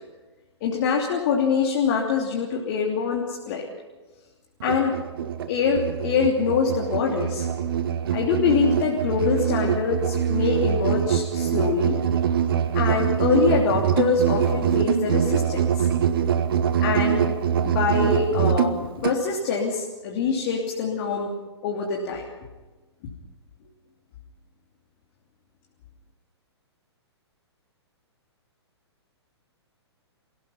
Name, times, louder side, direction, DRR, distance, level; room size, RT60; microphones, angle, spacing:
voice 1, 0.6-3.7 4.6-4.9 5.5-7.5 8.1-12.0 12.7-15.8 16.8-17.2 17.5-21.3 21.6-22.3, left 5 dB, 45° left, -1 dB, 3.1 m, -24 dB
Musical instrument, 4.6-19.2, right 8 dB, 55° right, 1.3 m, -24 dB
29.5 x 17.0 x 5.7 m, 1.2 s
figure-of-eight pair, 115°, 14 cm